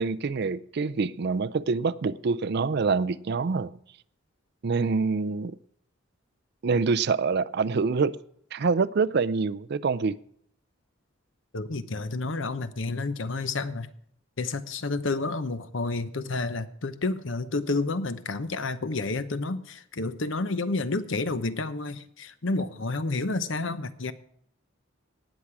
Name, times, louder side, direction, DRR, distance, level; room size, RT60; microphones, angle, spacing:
voice 1, 0.0-3.7 4.6-5.6 6.6-8.2 8.5-10.2, right 4 dB, 55° right, 0.5 m, -26 dB
voice 2, 11.5-13.9 14.4-24.1, left 3 dB, 70° left, 0.9 m, -30 dB
18.5 x 7.3 x 4.8 m
head